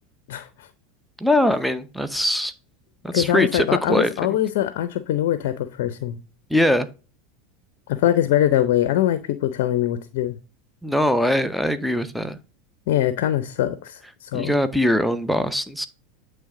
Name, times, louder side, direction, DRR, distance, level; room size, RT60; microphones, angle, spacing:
voice 1, 0.3-0.7 3.1-6.2 7.9-10.4 12.9-14.5, left 12 dB, 65° left, 0.5 m, -22 dB
voice 2, 1.2-2.5 3.0-4.1 6.5-6.9 10.8-12.4 14.3-15.9, left 1 dB, ahead, 0.7 m, -21 dB
8.6 x 3.3 x 3.7 m
hypercardioid pair, 90°, 0 cm